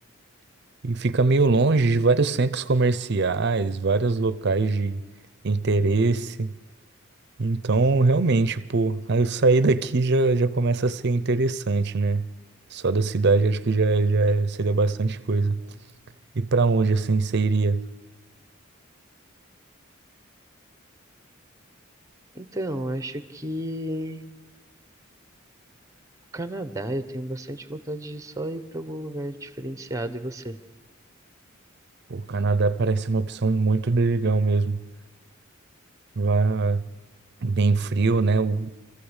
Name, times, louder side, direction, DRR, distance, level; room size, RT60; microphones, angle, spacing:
voice 1, 0.8-5.0 5.4-6.5 7.4-12.3 12.7-15.6 16.4-17.8 32.1-34.8 36.2-36.8 37.4-38.7, right 3 dB, 55° right, 0.6 m, -22 dB
voice 2, 22.3-24.2 26.3-30.6, right 1 dB, 15° right, 0.9 m, -32 dB
25.0 x 14.5 x 8.1 m
head